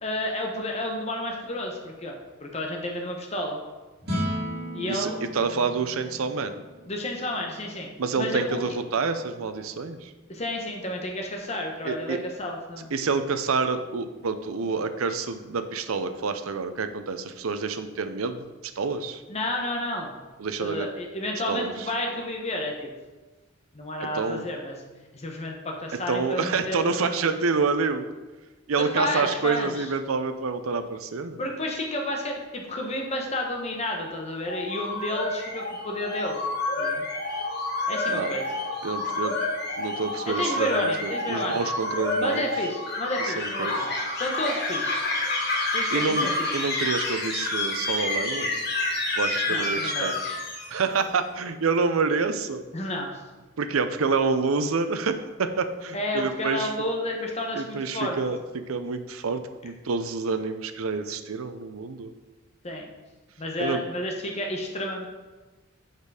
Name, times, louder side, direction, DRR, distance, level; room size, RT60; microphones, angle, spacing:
voice 1, 0.0-3.6 4.7-5.2 6.9-7.9 8.2-8.6 10.3-12.9 19.3-20.2 20.6-22.9 23.7-24.8 25.1-27.1 28.8-29.9 31.4-36.4 36.8-37.0 37.9-38.4 40.2-41.7 42.2-43.9 44.2-45.1 45.7-46.5 49.5-50.4 52.7-53.2 55.9-58.2 62.6-62.9 63.4-65.1, left 1 dB, 30° left, 1 dB, 1.1 m, -31 dB
sound 1, 4.0-10.4, equal, 50° right, 2.5 m, -37 dB
voice 2, 4.9-6.6 8.0-10.1 11.8-12.2 12.9-18.5 18.8-19.2 20.4-20.9 21.5-21.7 24.0-24.4 26.1-28.1 28.7-31.4 38.1-38.3 38.8-39.4 39.8-42.5 43.2-44.0 45.9-48.5 49.2-50.1 50.7-52.6 53.6-56.7 57.5-62.1 63.6-63.8, right 4 dB, 90° right, 9 dB, 0.6 m, -28 dB
sound 2, 34.4-51.0, left 2 dB, 50° left, 1.4 m, -29 dB
sound 3, 43.9-49.1, equal, 25° right, 2.1 m, -41 dB
6.6 x 5.2 x 4.8 m, 1.2 s
head